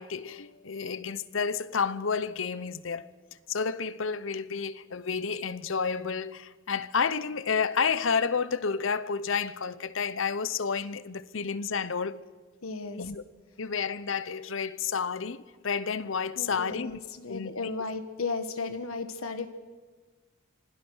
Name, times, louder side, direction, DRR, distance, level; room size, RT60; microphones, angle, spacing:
voice 1, 0.0-3.1 3.5-12.2 13.0-13.2 13.6-17.0 17.3-17.7, left 5 dB, 70° left, 0.8 m, -30 dB
voice 2, 12.6-13.0 16.4-19.5, left 4 dB, 85° left, 1.4 m, -35 dB
26.0 x 17.0 x 6.4 m
head